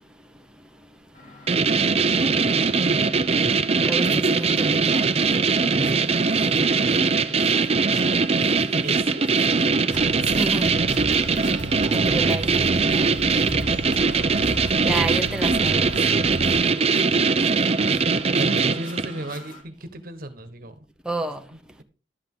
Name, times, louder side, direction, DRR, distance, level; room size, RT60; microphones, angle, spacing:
sound 1, 1.1-19.6, left 2 dB, 45° left, 2.7 m, -46 dB
sound 2, 1.5-19.2, right 4 dB, 35° right, 0.6 m, -21 dB
voice 1, 3.8-5.1 10.3-10.7 11.9-13.5 14.8-16.0 21.0-21.4, right 2 dB, 5° right, 0.8 m, -30 dB
voice 2, 8.8-9.2 17.8-20.8 21.5-21.8, right 1 dB, 55° right, 1.4 m, -36 dB
sound 3, 9.9-16.6, right 2 dB, 80° right, 0.9 m, -33 dB
11.5 x 8.3 x 3.7 m
head